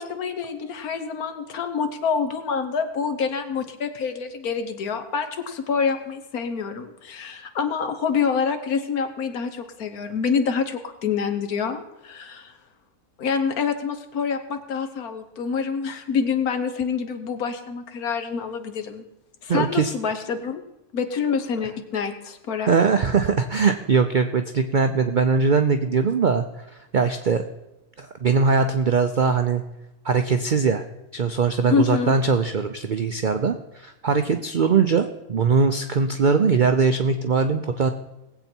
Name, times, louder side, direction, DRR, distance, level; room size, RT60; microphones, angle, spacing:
voice 1, 0.0-12.5 13.2-19.0 19.4-20.6 20.9-22.7 31.7-32.1, left 6 dB, 70° left, 8 dB, 1.5 m, -26 dB
voice 2, 19.5-19.9 22.7-26.5 26.9-27.4 28.0-29.6 30.0-30.8 31.1-37.9, right 5 dB, 65° right, 7 dB, 0.4 m, -21 dB
19.0 x 8.1 x 4.4 m, 0.96 s
omnidirectional pair, 1.6 m